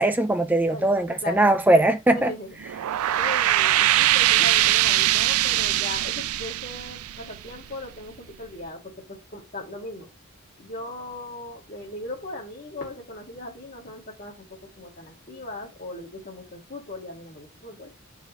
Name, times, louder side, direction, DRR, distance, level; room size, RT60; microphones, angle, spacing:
voice 1, 0.0-2.3, right 1 dB, 10° right, 0.5 m, -20 dB
voice 2, 0.7-1.5 2.1-2.5 3.1-10.1 10.6-17.9, left 2 dB, 40° left, 2.1 m, -38 dB
sound 1, 2.6-7.9, right 14 dB, 85° right, 0.3 m, -22 dB
6.3 x 4.9 x 3.1 m
head